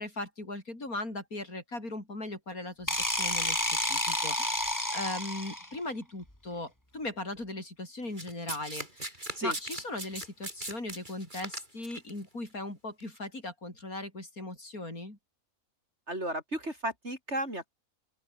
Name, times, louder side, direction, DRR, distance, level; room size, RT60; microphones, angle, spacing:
voice 1, 0.0-15.2, left 2 dB, 70° left, 7.6 m, -39 dB
sound 1, 2.9-5.8, left 1 dB, 10° left, 4.6 m, -30 dB
Domestic sounds home sounds, 8.2-12.1 13.0-13.2, right 1 dB, 30° right, 5.9 m, -39 dB
voice 2, 16.1-17.7, right 1 dB, 45° right, 8.2 m, -34 dB
open air
omnidirectional pair, 1.6 m